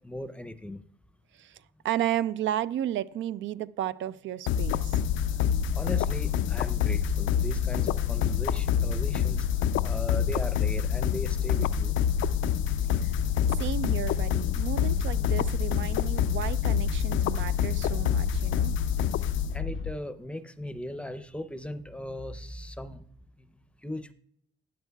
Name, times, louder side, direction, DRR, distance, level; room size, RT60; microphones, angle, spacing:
voice 1, 0.0-0.9 5.4-5.5 5.7-12.0 19.2-23.1 23.4-24.1, left 1 dB, 5° left, 0.6 m, -38 dB
voice 2, 1.3-5.0 12.9-13.2 13.5-18.8, right 12 dB, 70° right, 0.4 m, -33 dB
sound 1, 4.5-19.9, left 8 dB, 80° left, 0.4 m, -26 dB
12.5 x 9.1 x 2.3 m
cardioid pair, 90°, 20 cm